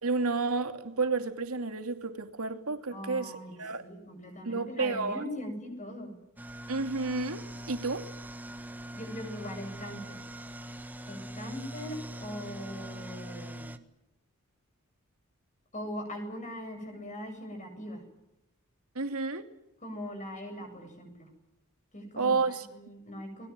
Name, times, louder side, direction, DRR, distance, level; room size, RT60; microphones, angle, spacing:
voice 1, 0.0-3.3 3.6-3.8 4.4-5.2 6.7-8.1 18.9-19.4 22.2-22.7, right 4 dB, 85° right, 2.7 m, -31 dB
voice 2, 2.9-6.1 8.9-10.2 11.1-13.7 15.7-18.0 19.8-21.3 21.9-23.5, left 1 dB, 35° left, 7.9 m, -41 dB
sound 1, 6.4-13.8, right 1 dB, 10° right, 1.5 m, -42 dB
30.0 x 21.5 x 7.6 m
head